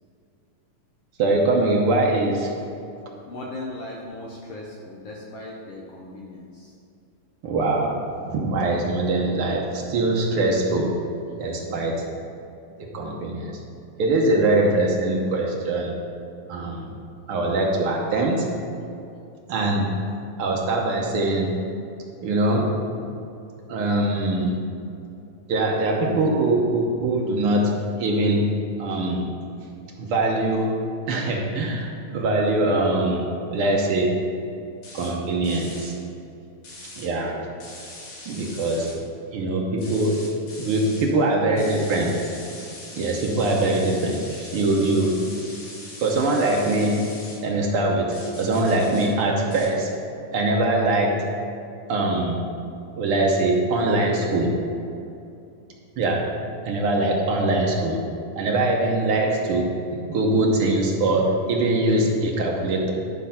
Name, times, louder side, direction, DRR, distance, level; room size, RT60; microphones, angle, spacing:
voice 1, 1.2-2.5 7.4-7.9 8.3-11.0 11.4-12.0 12.8-13.6 14.0-16.0 16.5-16.9 17.3-18.5 19.5-20.0 20.4-21.6 22.2-22.7 23.7-24.6 25.5-27.7 28.0-28.5 28.8-29.3 30.0-30.8 31.1-34.1 34.9-35.9 36.9-37.4 38.3-38.9 39.3-40.2 40.6-42.2 43.0-45.2 46.0-47.0 47.4-49.9 50.3-51.2 51.9-52.5 53.0-54.6 56.0-56.3 56.6-58.0 58.4-59.7 60.1-62.9, right 2 dB, 75° right, -1 dB, 1.2 m, -22 dB
voice 2, 3.3-6.7, left 1 dB, 65° left, -3 dB, 1.5 m, -37 dB
sound 1, 34.8-35.1 35.4-35.9 36.6-37.1 37.6-38.9 39.8-41.1 41.6-47.4 48.1-49.1 49.5-49.7, left 2 dB, 85° left, 3.7 m, -41 dB
11.5 x 4.8 x 5.7 m, 2.6 s
omnidirectional pair, 3.8 m